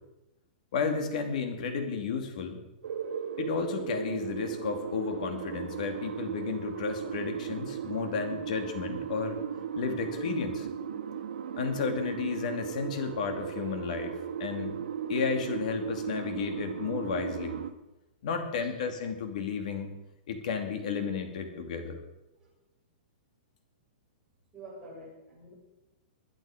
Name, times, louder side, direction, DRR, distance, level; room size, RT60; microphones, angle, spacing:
voice 1, 0.7-2.6 3.4-9.4 9.7-10.7 11.6-14.8 15.1-17.6 18.2-19.9 20.3-22.0, left 5 dB, 50° left, 6 dB, 2.5 m, -33 dB
sound 1, 2.8-17.7, right 8 dB, 85° right, 1.4 m, -36 dB
voice 2, 24.5-25.5, right 1 dB, 10° right, -6 dB, 5.9 m, -48 dB
21.0 x 10.5 x 5.0 m, 0.95 s
hypercardioid pair, 170°, 5 cm